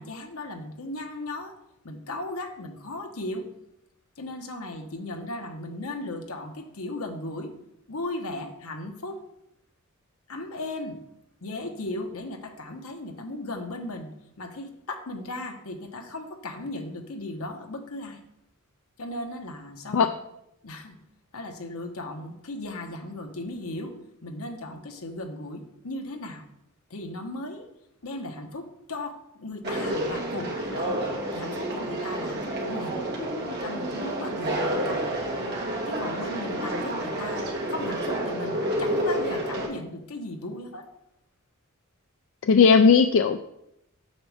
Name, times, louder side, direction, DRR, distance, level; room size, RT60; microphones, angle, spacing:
voice 1, 0.0-1.6 1.8-3.5 4.2-7.5 7.9-9.2 10.3-11.0 11.4-14.1 14.4-18.2 19.0-20.1 20.6-21.0 21.3-23.9 24.2-26.4 26.9-27.7 28.0-30.9 31.3-33.0 33.6-35.1 35.9-40.9 42.5-42.6, left 2 dB, 85° left, 4 dB, 1.2 m, -36 dB
Conversation, 29.6-39.7, right 1 dB, 50° right, 2.0 m, -29 dB
voice 2, 42.4-43.4, left 5 dB, 65° left, 8 dB, 0.4 m, -17 dB
8.6 x 7.3 x 3.5 m, 0.80 s
head